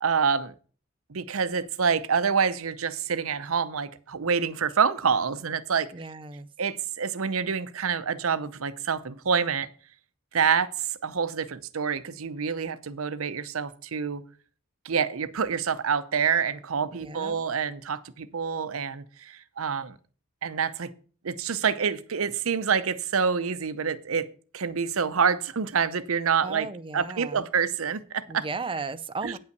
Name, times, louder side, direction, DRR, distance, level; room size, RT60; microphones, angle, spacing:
voice 1, 0.0-0.5 1.1-5.9 6.6-9.7 10.3-14.2 14.8-20.0 20.4-20.9 21.2-24.3 24.5-26.7 26.9-28.5 29.2-29.4, right 6 dB, 80° right, 0.7 m, -27 dB
voice 2, 5.9-6.5 16.9-17.4 26.4-27.4 28.3-29.4, right 4 dB, 25° right, 0.6 m, -35 dB
9.3 x 5.6 x 6.7 m
head